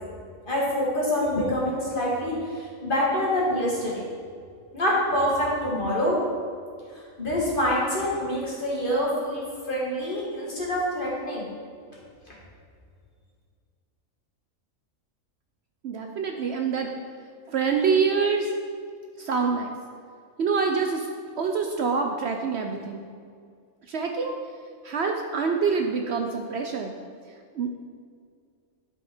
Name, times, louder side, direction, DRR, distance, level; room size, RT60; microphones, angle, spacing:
voice 1, 0.5-4.1 4.7-6.2 6.9-11.5, equal, 40° left, -5 dB, 2.2 m, -26 dB
voice 2, 15.8-16.9 17.5-18.5 19.2-19.7 20.4-21.1 21.4-23.0 23.9-24.4 24.8-26.9 27.5-27.9, right 5 dB, 65° right, 3 dB, 0.8 m, -26 dB
12.0 x 4.9 x 4.3 m, 2.1 s
omnidirectional pair, 1.4 m